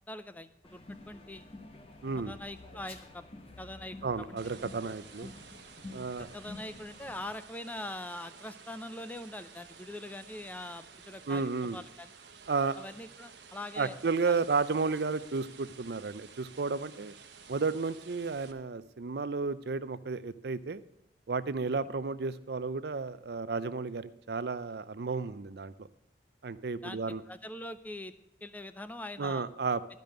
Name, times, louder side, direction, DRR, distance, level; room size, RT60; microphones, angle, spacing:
voice 1, 0.1-1.4 2.2-3.3 3.6-4.0 6.2-12.1 12.8-13.9 14.3-14.4 26.8-28.1 28.4-29.5, left 1 dB, 10° left, 12 dB, 0.5 m, -43 dB
sound 1, 0.6-7.4, left 2 dB, 35° left, 1.1 m, -49 dB
voice 2, 2.0-2.3 4.0-5.3 5.9-6.3 11.3-11.8 12.5-12.8 13.8-17.1 17.5-20.8 21.3-25.9 26.4-27.2 29.2-29.8, right 4 dB, 65° right, 15 dB, 0.5 m, -32 dB
sound 2, 4.4-18.5, right 6 dB, 85° right, 1.1 m, -53 dB
12.0 x 5.3 x 7.7 m, 0.87 s
head